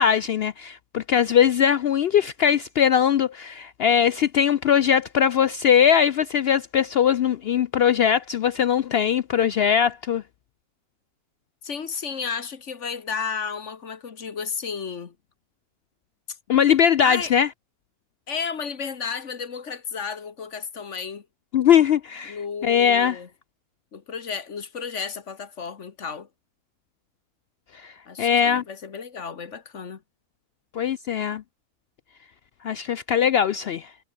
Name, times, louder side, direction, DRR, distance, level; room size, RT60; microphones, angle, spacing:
voice 1, 0.0-10.2 16.5-17.5 21.5-22.4 22.6-23.2 27.7-27.9 28.2-28.6 30.7-31.4 32.6-33.9, left 8 dB, 85° left, 0.5 m, -20 dB
voice 2, 11.6-15.1 16.3-16.4 17.0-17.3 18.3-21.3 22.3-23.3 23.9-26.3 28.1-30.0, left 6 dB, 50° left, 1.6 m, -33 dB
omnidirectional pair, 1.6 m